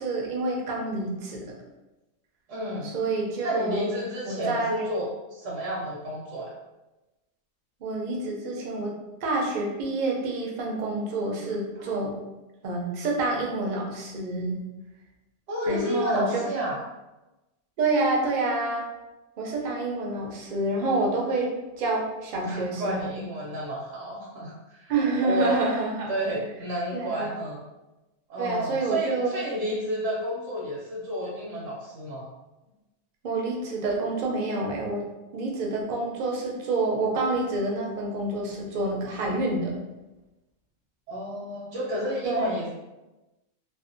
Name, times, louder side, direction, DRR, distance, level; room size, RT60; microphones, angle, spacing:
voice 1, 0.0-1.6 2.8-3.9 4.3-4.9 7.8-8.9 9.2-12.1 12.6-14.6 15.7-16.6 17.8-18.9 19.4-23.2 24.9-26.1 26.9-27.3 28.4-29.3 33.2-35.0 35.3-39.7 42.2-42.5, right 2 dB, 60° right, -1 dB, 0.5 m, -28 dB
voice 2, 2.5-2.9 3.4-6.5 11.8-11.9 15.5-16.8 22.4-24.9 25.2-25.6 26.1-27.6 28.3-32.3 39.2-39.4 41.1-42.7, right 1 dB, 75° right, -4 dB, 0.9 m, -31 dB
2.6 x 2.0 x 2.5 m, 1.0 s
omnidirectional pair, 1.3 m